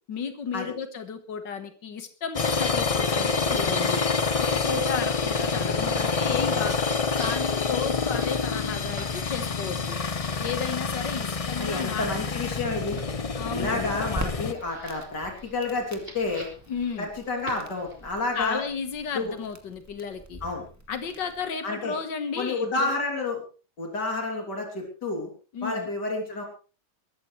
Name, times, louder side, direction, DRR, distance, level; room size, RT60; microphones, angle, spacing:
voice 1, 0.1-4.1 4.4-6.9 7.2-10.0 10.4-12.1 13.4-14.0 16.7-17.1 18.3-20.4 20.9-22.9 25.5-25.9, left 6 dB, 90° left, 8 dB, 2.2 m, -33 dB
sound 1, 2.3-14.5, left 4 dB, 55° left, 0.3 m, -27 dB
sound 2, 6.1-18.1, right 1 dB, 30° right, 4.5 m, -49 dB
voice 2, 11.6-13.0 13.5-16.5 17.0-18.6 19.2-19.3 20.4-20.6 21.6-22.0 22.4-23.4 23.8-25.3 25.6-26.4, left 3 dB, 70° left, 1 dB, 3.8 m, -30 dB
Crackle, 14.1-21.4, equal, 10° right, 2.2 m, -43 dB
22.0 x 14.0 x 3.3 m, 0.37 s
omnidirectional pair, 1.9 m